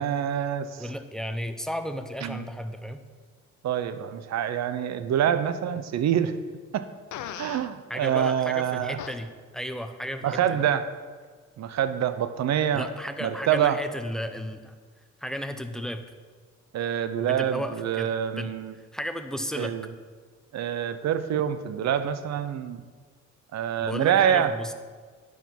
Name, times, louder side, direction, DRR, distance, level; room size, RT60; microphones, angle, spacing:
voice 1, 0.0-0.8 2.2-2.5 3.6-6.3 6.7-6.9 7.4-9.0 10.2-10.9 11.6-12.9 13.2-13.8 16.7-18.7 19.6-19.9 20.5-22.8 23.5-24.7, right 9 dB, 60° right, 12 dB, 0.7 m, -26 dB
voice 2, 0.8-3.0 7.9-10.6 12.7-14.8 15.2-16.0 17.2-19.8 23.8-24.7, equal, ahead, 8 dB, 0.7 m, -34 dB
Fart, 7.1-7.7 9.0-9.2, left 10 dB, 75° left, 0.6 m, -37 dB
10.5 x 4.7 x 5.9 m, 1.5 s
cardioid pair, 90°, 30 cm